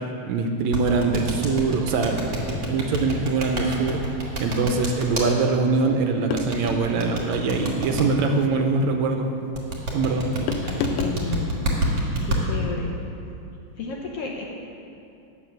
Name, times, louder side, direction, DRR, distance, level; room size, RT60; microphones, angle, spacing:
voice 1, 0.3-2.2 2.7-4.0 4.4-9.3 9.9-10.3, right 4 dB, 75° right, 4 dB, 1.9 m, -23 dB
sound 1, 0.7-5.3 6.4-8.0 9.5-12.4, right 1 dB, 40° right, 1.8 m, -27 dB
sound 2, 6.3-6.9 8.2-8.5 10.5-11.2, left 7 dB, 85° left, 2.0 m, -29 dB
voice 2, 10.6-11.6 12.2-12.9 13.8-14.4, left 4 dB, 70° left, -1 dB, 1.5 m, -32 dB
9.8 x 7.3 x 6.3 m, 2.7 s
omnidirectional pair, 3.4 m